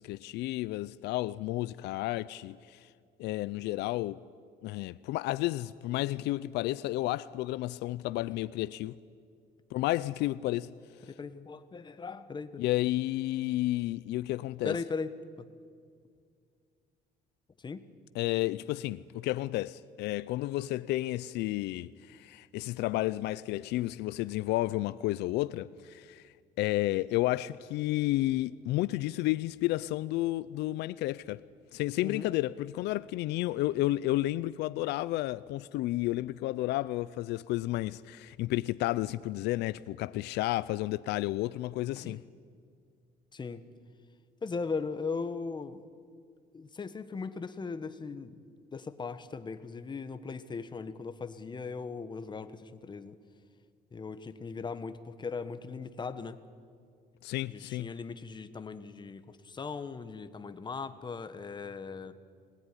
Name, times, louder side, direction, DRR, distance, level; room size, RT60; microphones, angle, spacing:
voice 1, 0.0-2.9 3.2-4.2 4.6-8.9 9.7-10.7 12.6-14.8 18.1-26.2 26.6-31.4 31.7-42.2 57.2-57.9, left 17 dB, 85° left, 0.5 m, -31 dB
voice 2, 11.1-12.7 14.6-15.1 17.6-17.8 32.0-32.3 42.0-42.2 43.3-43.7 44.4-45.8 46.5-48.4 48.7-53.2 53.9-56.4 57.4-62.1, left 4 dB, 25° left, 1.3 m, -38 dB
24.5 x 19.0 x 9.9 m
cardioid pair, 110°, 17 cm